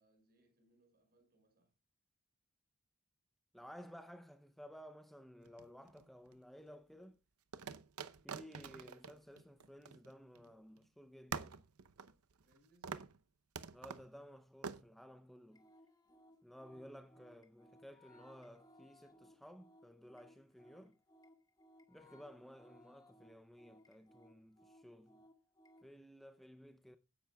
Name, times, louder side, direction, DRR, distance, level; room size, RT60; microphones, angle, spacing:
voice 1, 0.0-1.7 12.4-13.0, right 1 dB, 45° right, 5.4 m, -73 dB
voice 2, 3.5-7.2 8.2-11.6 13.7-15.7 16.4-21.0 21.9-25.2 25.8-27.0, equal, ahead, 0.6 m, -56 dB
sound 1, 5.5-6.3 7.5-10.5 10.8-10.9 11.3-12.6 12.8-13.2 13.6-14.1 14.6-14.8, right 5 dB, 80° right, 0.7 m, -46 dB
sound 2, 15.5-25.9, left 1 dB, 20° left, 1.7 m, -65 dB
16.0 x 10.5 x 2.3 m
head